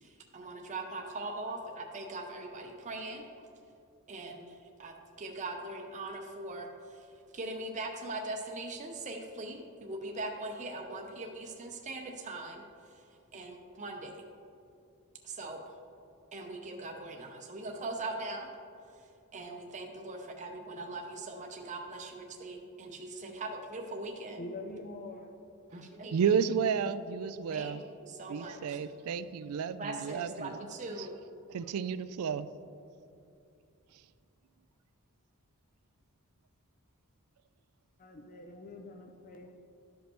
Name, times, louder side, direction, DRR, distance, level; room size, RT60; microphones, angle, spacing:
voice 1, 0.0-3.2 4.1-7.1 7.3-12.6 13.3-14.1 15.2-15.7 16.3-18.5 19.3-24.4 25.7-26.4 27.5-28.7 29.8-31.1, right 2 dB, 35° right, 1 dB, 0.6 m, -41 dB
voice 2, 24.4-25.3 28.2-28.4 38.0-39.5, left 2 dB, 40° left, 3 dB, 0.5 m, -45 dB
voice 3, 26.1-27.8 28.3-30.6 31.0-31.1 31.5-32.5, right 7 dB, 70° right, 14 dB, 0.3 m, -32 dB
12.0 x 5.2 x 3.0 m, 2.6 s
head